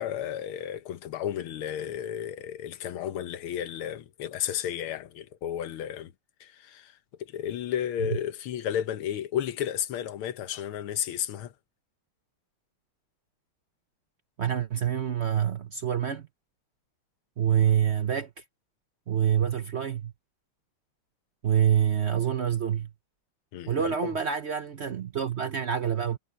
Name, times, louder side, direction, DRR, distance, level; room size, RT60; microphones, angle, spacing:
voice 1, 0.0-6.1 6.4-11.5 23.5-23.9, left 10 dB, 80° left, 1.8 m, -33 dB
voice 2, 14.4-16.3 17.4-18.4 19.1-20.1 21.4-22.9 23.7-26.2, right 9 dB, 80° right, 0.6 m, -26 dB
omnidirectional pair, 2.3 m